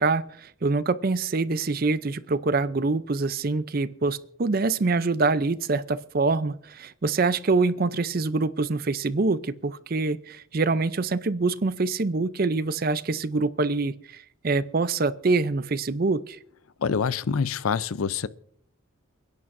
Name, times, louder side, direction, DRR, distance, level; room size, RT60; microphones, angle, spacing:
voice 1, 0.0-16.4, right 3 dB, 45° right, 0.5 m, -25 dB
voice 2, 16.8-18.3, left 6 dB, 85° left, 0.5 m, -26 dB
29.5 x 10.5 x 2.6 m
head